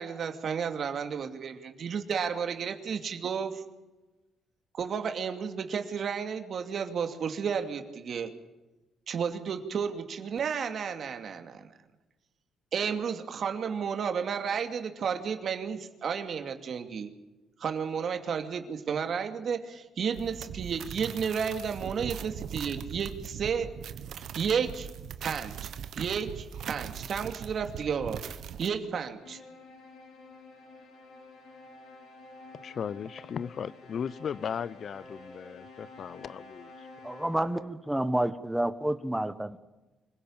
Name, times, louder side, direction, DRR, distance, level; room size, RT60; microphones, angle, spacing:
voice 1, 0.0-3.6 4.7-8.3 9.1-11.7 12.7-17.1 17.6-23.7 24.3-24.9 25.2-28.2 28.6-29.4, right 6 dB, 55° right, 2.5 m, -32 dB
sound 1, 20.1-28.7, right 8 dB, 75° right, 1.4 m, -40 dB
sound 2, 29.2-37.7, left 2 dB, 80° left, 6.1 m, -50 dB
voice 2, 32.6-36.9, left 7 dB, 55° left, 0.7 m, -36 dB
voice 3, 37.0-39.6, right 1 dB, 5° right, 1.4 m, -29 dB
25.5 x 16.5 x 8.9 m
cardioid pair, 90°, 0 cm